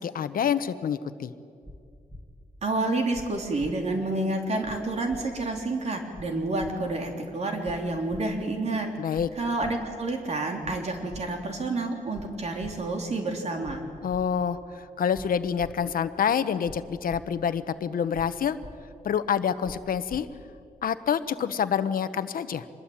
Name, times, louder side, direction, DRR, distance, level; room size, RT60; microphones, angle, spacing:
voice 1, 0.0-1.3 9.0-9.3 14.0-18.6 19.0-20.3 20.8-22.7, left 8 dB, 75° left, 12 dB, 1.1 m, -27 dB
sound 1, 1.6-1.8 2.1-2.2 3.1-3.3 3.6-3.7 4.6-4.8 5.1-5.2 6.1-6.3 6.6-6.7 7.6-7.8 8.1-8.2 9.1-9.3 9.6-9.7 10.6-10.8 11.1-11.2 12.1-12.3 12.6-12.7 13.6-13.8 14.1-14.2 15.1-15.3 15.6-15.7 16.6-16.8 17.1-17.2 18.1-18.3 18.6-18.7 19.6-19.8 20.1-20.2, left 1 dB, ahead, 1.8 m, -43 dB
voice 2, 2.6-13.9, right 2 dB, 45° right, 2 dB, 3.6 m, -29 dB
25.5 x 21.5 x 8.9 m, 2.3 s
wide cardioid pair, 140°, 15 cm